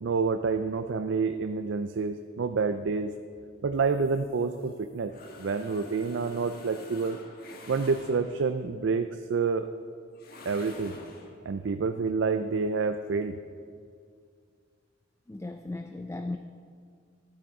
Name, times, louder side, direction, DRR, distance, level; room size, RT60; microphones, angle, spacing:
voice 1, 0.0-3.1 3.6-5.1 5.4-7.2 7.7-9.7 10.5-11.0 11.5-13.4, right 4 dB, 65° right, 9 dB, 0.4 m, -28 dB
sound 1, 3.8-8.6 10.2-11.4, left 2 dB, 50° left, 1.3 m, -48 dB
voice 2, 15.3-16.4, left 2 dB, 15° left, 7 dB, 0.3 m, -36 dB
12.5 x 9.4 x 4.8 m, 2.2 s
head